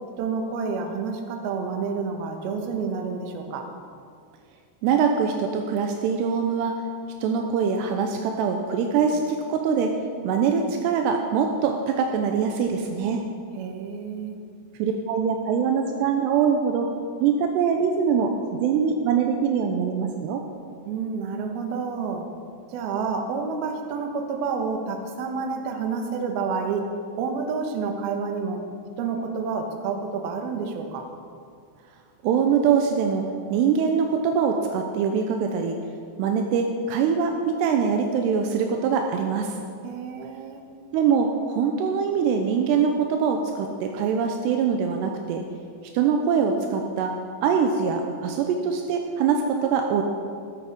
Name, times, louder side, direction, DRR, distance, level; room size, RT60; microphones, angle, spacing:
voice 1, 0.2-3.6 13.5-14.4 20.9-22.2 22.7-26.8 27.1-28.6 29.0-31.1 39.8-40.6, right 5 dB, 70° right, 4 dB, 3.0 m, -29 dB
voice 2, 4.8-6.8 7.2-9.9 10.2-13.2 14.8-16.9 17.2-20.4 32.2-33.2 33.5-35.8 36.2-39.5 40.9-45.4 45.9-47.1 47.4-50.0, right 6 dB, 85° right, 4 dB, 2.8 m, -23 dB
14.0 x 13.0 x 5.3 m, 2.3 s
omnidirectional pair, 5.0 m